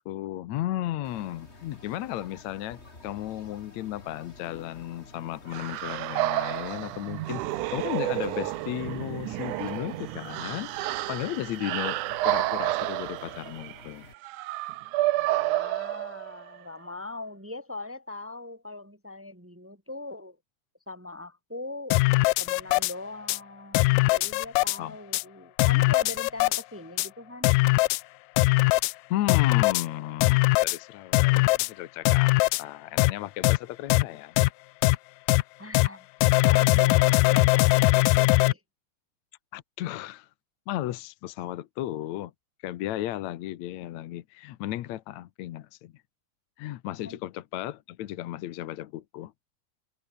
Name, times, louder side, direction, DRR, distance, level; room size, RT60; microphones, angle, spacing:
voice 1, 0.1-7.4 7.7-10.7 11.1-12.0 12.2-14.1 24.8-25.0 29.1-32.3 32.6-34.4 39.5-40.3 40.7-42.3 42.6-45.9 46.6-49.3, left 14 dB, 70° left, 2.0 m, -34 dB
sound 1, 1.0-14.1, left 2 dB, 20° left, 3.7 m, -50 dB
sound 2, 5.5-16.6, right 17 dB, 75° right, 2.2 m, -30 dB
voice 2, 15.2-20.4 20.9-22.0 22.4-27.5 35.6-36.1 36.4-38.6 47.0-47.2, left 2 dB, 10° right, 0.6 m, -41 dB
sound 3, 21.9-22.9 23.3-23.4 23.7-24.8 25.1-25.2 25.6-26.6 27.0-27.1 27.4-28.0 28.4-28.9 29.3-29.9 30.2-30.8 31.1-31.7 32.1-32.6 33.0-33.1 33.4-33.6 33.9-34.0 34.4-34.5 34.8-35.0 35.3-35.4 35.7-35.9 36.2-38.5, left 22 dB, 90° left, 2.2 m, -21 dB
omnidirectional pair, 3.8 m